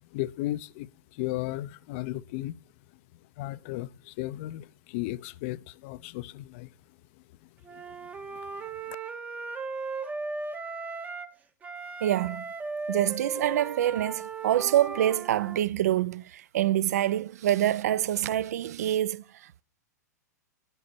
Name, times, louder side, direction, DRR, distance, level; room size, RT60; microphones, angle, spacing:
voice 1, 0.1-2.6 3.4-6.7 7.7-7.8 8.3-8.4, left 16 dB, 45° left, 0.4 m, -35 dB
Wind instrument woodwind instrument, 7.6-11.3 11.6-15.6, right 3 dB, 15° right, 0.7 m, -37 dB
voice 2, 12.0-12.5 12.9-19.6, right 12 dB, 60° right, 0.4 m, -26 dB
9.9 x 5.1 x 4.3 m
figure-of-eight pair, 105°, 10 cm